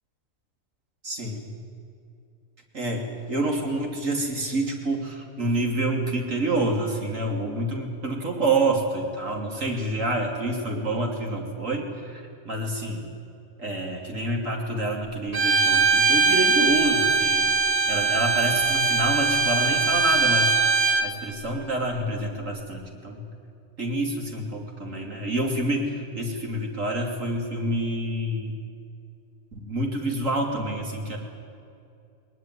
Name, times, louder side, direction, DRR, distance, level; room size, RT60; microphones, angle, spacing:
voice 1, 1.0-1.4 2.7-13.1 13.6-17.4 17.9-20.5 21.0-23.3 23.8-28.5 29.6-31.2, right 1 dB, 85° right, 1 dB, 3.3 m, -27 dB
Bowed string instrument, 15.3-21.1, right 4 dB, 30° right, 1.5 m, -21 dB
20.0 x 20.0 x 9.6 m, 2.6 s
omnidirectional pair, 1.3 m